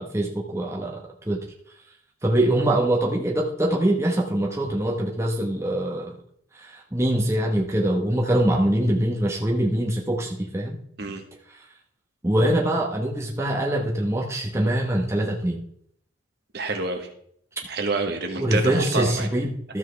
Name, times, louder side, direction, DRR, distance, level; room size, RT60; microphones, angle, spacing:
voice 1, 0.0-1.4 2.2-6.2 6.5-10.8 12.2-15.6 18.4-19.8, right 1 dB, 15° right, -2 dB, 1.1 m, -23 dB
voice 2, 16.5-17.1 17.7-19.3, right 3 dB, 50° right, 5 dB, 1.3 m, -27 dB
13.0 x 7.4 x 3.3 m, 0.66 s
head